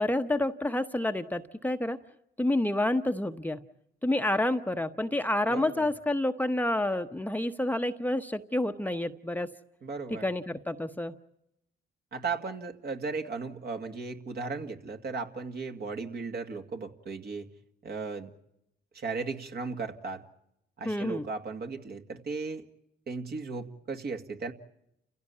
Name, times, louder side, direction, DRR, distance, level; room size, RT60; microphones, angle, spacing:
voice 1, 0.0-2.0 2.4-3.6 4.0-9.5 10.1-11.1 20.8-21.2, left 1 dB, 10° left, 7 dB, 0.9 m, -29 dB
voice 2, 5.5-5.9 9.8-10.2 12.1-17.5 17.8-18.3 18.9-20.2 20.8-22.6 23.1-24.5, right 4 dB, 50° right, 4 dB, 2.2 m, -36 dB
29.5 x 16.5 x 8.5 m, 0.81 s
cardioid pair, 90°, 20 cm